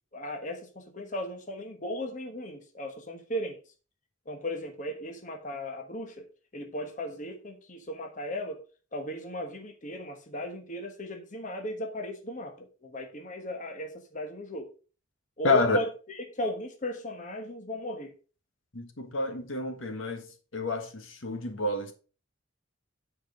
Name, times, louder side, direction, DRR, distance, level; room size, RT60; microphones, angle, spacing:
voice 1, 0.1-3.6 4.2-6.3 6.5-8.6 8.9-14.7 15.4-18.1, left 1 dB, 35° left, 1.2 m, -36 dB
voice 2, 15.4-15.8 18.7-20.3 20.5-21.9, left 3 dB, 70° left, 1.5 m, -28 dB
9.1 x 4.9 x 5.1 m
head